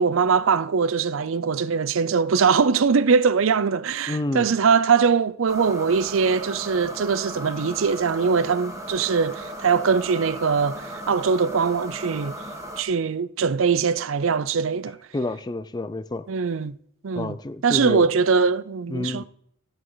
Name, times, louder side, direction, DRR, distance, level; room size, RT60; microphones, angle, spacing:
voice 1, 0.0-12.4 12.8-15.0 16.3-16.8 17.0-17.4 17.6-19.2, right 5 dB, 65° right, 0.5 m, -22 dB
voice 2, 4.1-4.5 15.1-16.3 17.1-18.1 18.9-19.2, left 2 dB, 20° left, 0.5 m, -29 dB
sound 1, 5.5-12.8, equal, 15° right, 1.6 m, -36 dB
15.5 x 7.8 x 4.0 m
head